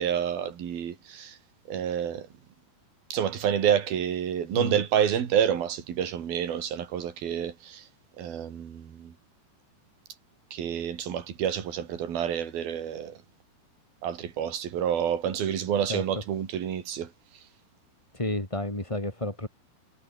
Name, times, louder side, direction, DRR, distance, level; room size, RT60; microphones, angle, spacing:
voice 1, 0.0-1.4 1.7-2.3 3.1-7.8 8.2-9.1 10.5-13.2 14.0-17.1, right 9 dB, 65° right, 4.5 m, -28 dB
voice 2, 18.1-19.5, left 1 dB, 10° left, 2.8 m, -31 dB
omnidirectional pair, 4.6 m